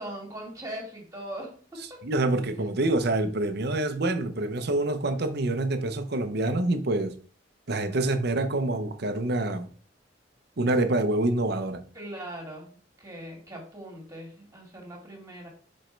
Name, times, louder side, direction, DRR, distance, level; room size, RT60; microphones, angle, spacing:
voice 1, 0.0-1.5 7.7-8.5 11.9-15.5, right 1 dB, 20° right, 2.1 m, -41 dB
voice 2, 2.0-7.1 7.7-9.7 10.6-11.8, right 2 dB, 60° right, 0.8 m, -26 dB
5.1 x 4.4 x 4.5 m
head